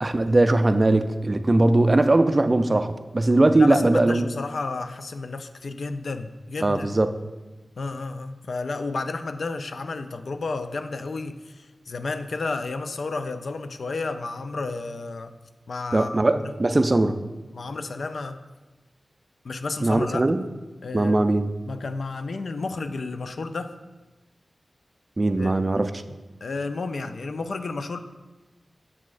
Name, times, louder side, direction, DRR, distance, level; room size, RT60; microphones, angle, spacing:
voice 1, 0.0-4.3 6.6-7.1 15.9-17.2 19.8-20.4 20.9-21.5 25.2-25.9, right 2 dB, 35° right, 10 dB, 0.3 m, -20 dB
voice 2, 3.6-6.9 7.8-15.4 15.7-16.4 17.5-18.4 19.4-20.2 20.8-21.3 21.7-23.7 25.4-25.5 26.4-28.0, left 3 dB, 75° left, 9 dB, 0.3 m, -32 dB
7.2 x 6.0 x 2.5 m, 1.2 s
wide cardioid pair, 75°, 0 cm